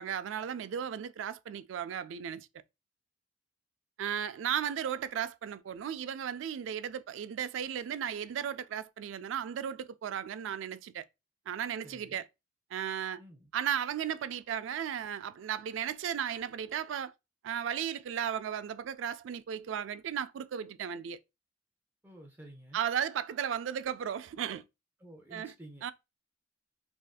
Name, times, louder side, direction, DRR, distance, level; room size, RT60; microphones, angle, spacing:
voice 1, 0.0-2.5 4.0-11.0 11.5-12.3 12.7-13.2 13.5-17.1 17.4-21.2 22.7-24.6 25.3-25.5 25.8-25.9, right 9 dB, 90° right, 0.3 m, -35 dB
voice 2, 11.8-12.2 13.2-13.5 22.0-22.8 25.0-25.9, right 1 dB, 10° right, 0.5 m, -52 dB
3.5 x 2.6 x 2.3 m
head